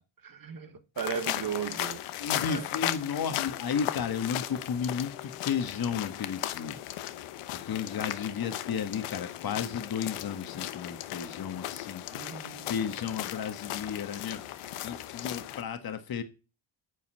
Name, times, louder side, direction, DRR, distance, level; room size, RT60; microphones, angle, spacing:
voice 1, 0.2-2.0 2.4-2.6 12.1-12.7, right 7 dB, 45° right, 1.3 m, -36 dB
sound 1, 1.0-15.6, left 13 dB, 90° left, 1.0 m, -36 dB
voice 2, 2.2-6.8 7.5-12.3 12.6-14.4 14.8-16.2, left 7 dB, 45° left, 1.5 m, -33 dB
9.7 x 5.5 x 7.6 m
cardioid pair, 105°, 50 cm